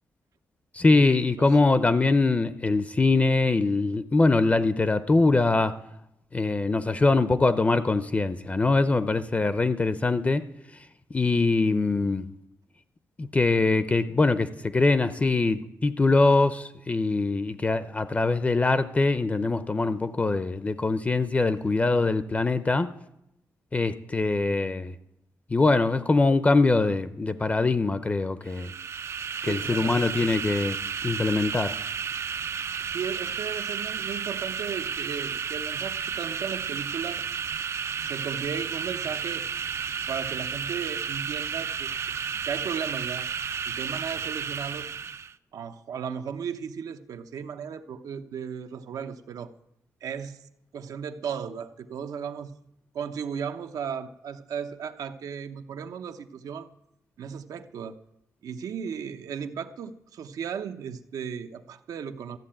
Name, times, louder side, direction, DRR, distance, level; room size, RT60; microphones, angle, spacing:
voice 1, 0.7-5.7 6.3-10.4 11.1-12.3 13.2-22.9 23.7-24.9 25.5-28.7 29.4-31.7, left 3 dB, 25° left, 13 dB, 0.6 m, -23 dB
sound 1, 28.5-45.3, right 7 dB, 50° right, 0.5 m, -32 dB
voice 2, 29.5-30.3 32.9-37.2 38.0-39.5 40.1-43.3 43.6-44.9 45.5-49.5 50.0-50.4 50.7-52.5 52.9-56.7 57.2-58.0 58.4-62.4, right 7 dB, 80° right, 8 dB, 0.8 m, -35 dB
13.5 x 7.6 x 8.8 m, 0.83 s
cardioid pair, 105°, 6 cm